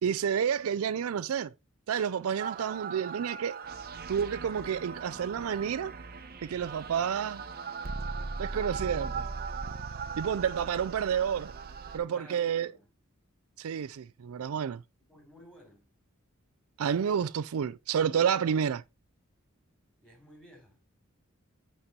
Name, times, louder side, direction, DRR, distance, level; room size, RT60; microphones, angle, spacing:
voice 1, 0.0-1.5 1.9-3.6 4.1-5.9 6.4-7.4 8.4-9.3 10.2-11.5 11.9-12.7 13.6-14.8 16.8-18.8, right 8 dB, 70° right, 0.4 m, -30 dB
sound 1, 2.4-12.0, right 5 dB, 45° right, 0.9 m, -39 dB
voice 2, 12.0-12.9 15.1-15.9 20.0-20.8, equal, 5° left, 3.6 m, -54 dB
8.7 x 4.3 x 4.3 m
head